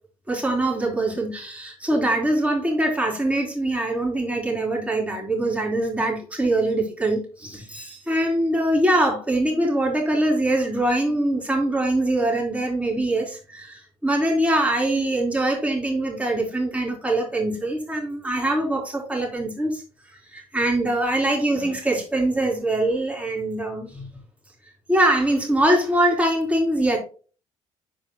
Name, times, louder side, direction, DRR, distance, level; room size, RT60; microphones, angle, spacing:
voice 1, 0.3-19.8 20.3-24.1 24.9-27.0, right 1 dB, 5° right, 3.6 m, -23 dB
10.5 x 4.9 x 2.2 m
figure-of-eight pair, 45°, 17 cm